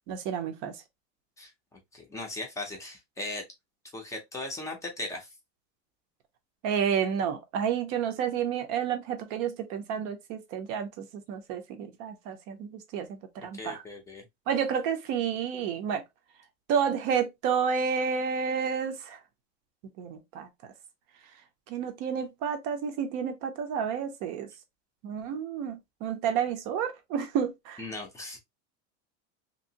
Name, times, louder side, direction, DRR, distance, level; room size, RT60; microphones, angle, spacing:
voice 1, 0.1-0.7 6.6-13.8 14.5-16.0 16.7-19.2 20.0-20.5 21.7-24.5 25.0-27.8, right 7 dB, 40° right, 0.6 m, -30 dB
voice 2, 1.4-3.4 3.9-5.3 13.5-14.3 27.8-28.4, left 2 dB, 10° left, 0.6 m, -38 dB
2.9 x 2.6 x 2.7 m
supercardioid pair, 170°, 33 cm